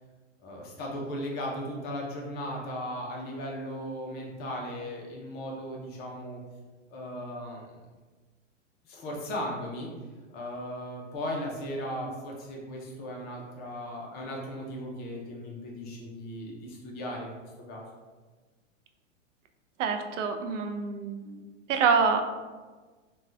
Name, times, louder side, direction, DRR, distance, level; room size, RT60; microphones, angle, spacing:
voice 1, 0.4-6.4 6.9-7.7 8.8-9.9 10.3-17.8, equal, 25° left, -1 dB, 0.5 m, -37 dB
voice 2, 19.8-21.4 21.7-22.2, right 5 dB, 75° right, 5 dB, 0.5 m, -26 dB
2.6 x 2.3 x 3.2 m, 1.3 s
hypercardioid pair, 130°, 38 cm